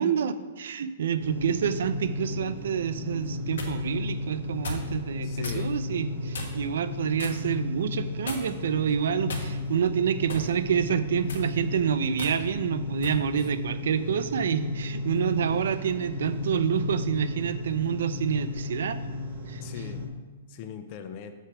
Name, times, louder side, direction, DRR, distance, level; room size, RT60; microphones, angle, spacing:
voice 1, 0.0-19.0 19.5-19.6, right 8 dB, 70° right, 13 dB, 0.5 m, -28 dB
sound 1, 1.2-20.1, left 2 dB, 40° right, 1.1 m, -34 dB
sound 2, 3.2-3.8 4.6-4.9 5.4-5.6 6.3-6.7 7.2-7.4 8.3-8.7 9.3-9.8 10.3-10.5 11.2-11.5 12.2-12.4 13.0-13.2, left 3 dB, 85° left, 1.3 m, -36 dB
voice 2, 5.2-5.7 13.3-13.5 19.6-20.1 20.5-21.3, left 7 dB, 30° left, 7 dB, 0.4 m, -40 dB
6.7 x 4.5 x 5.8 m, 1.3 s
hypercardioid pair, 175°, 0 cm